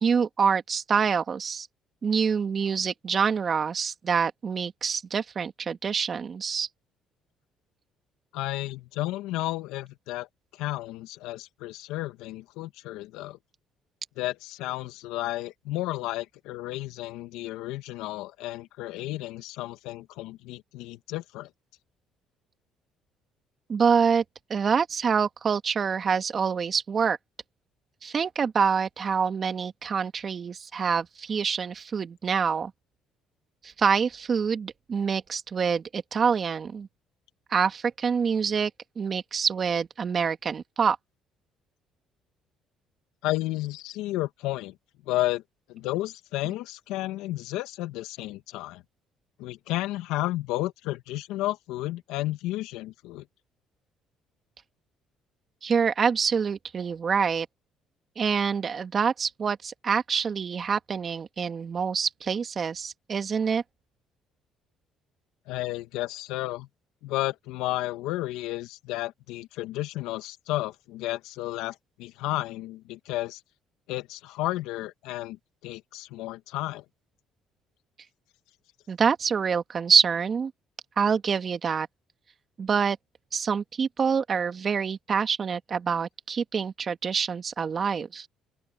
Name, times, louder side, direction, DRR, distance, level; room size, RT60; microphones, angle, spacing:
voice 1, 0.0-1.7 2.0-6.7 23.7-24.2 24.5-27.2 28.0-32.7 33.6-36.9 37.5-38.7 39.0-41.0 55.6-57.5 58.2-63.6 78.9-80.5 81.0-81.9 82.6-83.0 83.3-88.3, right 6 dB, 45° right, 2.2 m, -26 dB
voice 2, 8.3-10.3 10.5-13.4 14.2-21.5 43.2-44.8 45.0-45.4 45.7-48.8 49.4-53.3 65.5-66.7 67.0-73.4 73.9-76.8, left 17 dB, 80° left, 2.0 m, -32 dB
open air
supercardioid pair, 70°, 0 cm